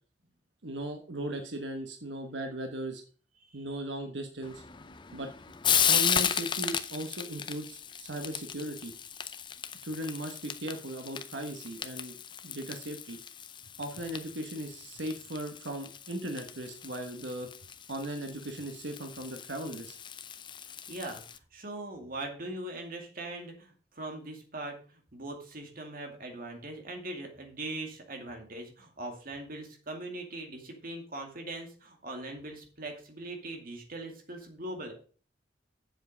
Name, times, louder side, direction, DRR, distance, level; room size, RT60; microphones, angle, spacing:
voice 1, 0.6-3.0 3.5-4.6 5.1-5.3 5.9-8.9 9.8-12.2 12.4-13.2 13.8-17.5 17.9-19.9, right 1 dB, 90° right, 5 dB, 1.3 m, -37 dB
Frying (food), 4.4-21.4, left 8 dB, 25° left, 0.6 m, -35 dB
voice 2, 20.9-34.9, right 2 dB, 50° right, 3 dB, 2.3 m, -41 dB
7.8 x 7.3 x 5.2 m, 0.40 s
head